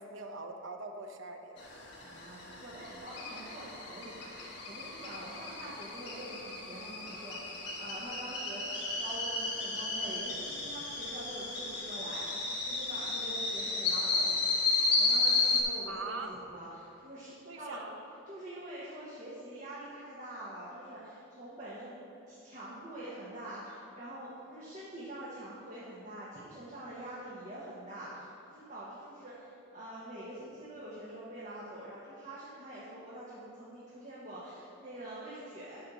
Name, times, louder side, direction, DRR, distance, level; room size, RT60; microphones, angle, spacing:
voice 1, 0.0-1.5 15.9-16.4 17.4-18.0, right 3 dB, 70° right, 4 dB, 0.8 m, -42 dB
sound 1, 1.6-15.6, left 3 dB, 55° left, 1.5 m, -33 dB
voice 2, 2.0-12.3 12.6-14.4 14.7-17.8 18.3-35.8, right 1 dB, 35° right, -8 dB, 1.3 m, -45 dB
6.9 x 5.6 x 6.9 m, 2.7 s
head